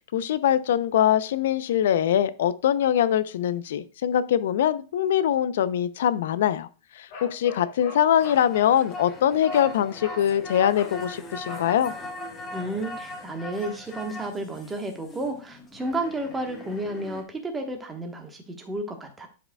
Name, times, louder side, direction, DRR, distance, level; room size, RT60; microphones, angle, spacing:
voice 1, 0.1-6.7 7.0-11.9, left 10 dB, 75° left, 0.5 m, -23 dB
Bark, 7.1-8.5 9.5-9.7 10.0-10.3 10.7-11.0 11.5-11.7, left 4 dB, 50° left, 2.2 m, -41 dB
sound 1, 8.2-17.2, left 1 dB, 20° left, 1.3 m, -40 dB
voice 2, 12.5-19.3, right 1 dB, 10° right, 1.2 m, -32 dB
11.0 x 4.9 x 2.2 m
supercardioid pair, 155°, 0 cm